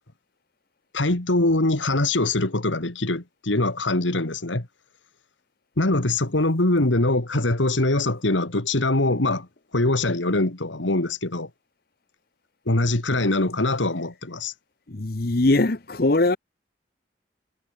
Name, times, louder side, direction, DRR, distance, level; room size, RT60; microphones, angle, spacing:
voice 1, 0.9-4.7 5.8-9.5 9.7-11.5 12.7-14.5, left 2 dB, 85° left, 2.3 m, -23 dB
voice 2, 14.9-16.4, left 2 dB, 50° left, 1.0 m, -21 dB
head